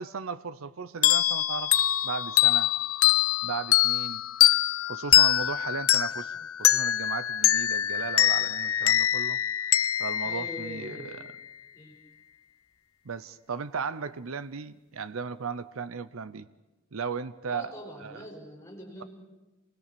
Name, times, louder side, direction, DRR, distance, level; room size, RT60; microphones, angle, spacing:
voice 1, 0.0-1.7 2.0-2.7 3.4-4.2 4.9-9.4 10.0-11.1 13.1-16.5 16.9-17.7 18.0-18.2, right 5 dB, 75° right, 14 dB, 0.7 m, -36 dB
sound 1, 1.0-11.3, left 12 dB, 80° left, 0.7 m, -24 dB
voice 2, 10.2-11.2 11.7-12.0 17.5-19.1, left 1 dB, 15° left, -1 dB, 4.9 m, -43 dB
26.5 x 20.5 x 6.9 m, 1.1 s
head